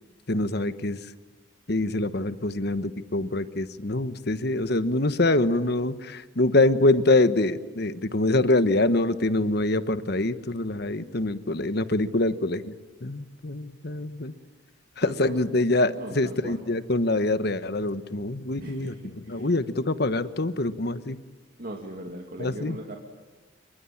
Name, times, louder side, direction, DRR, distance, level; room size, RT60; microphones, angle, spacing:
voice 1, 0.3-1.0 1.7-12.7 13.0-14.3 15.0-21.2 22.4-22.8, left 2 dB, 55° left, 12 dB, 1.2 m, -25 dB
voice 2, 15.0-15.4 16.0-16.6 18.6-19.5 21.6-23.0, right 1 dB, 50° right, 1 dB, 2.6 m, -39 dB
27.0 x 23.0 x 8.7 m, 1.2 s
head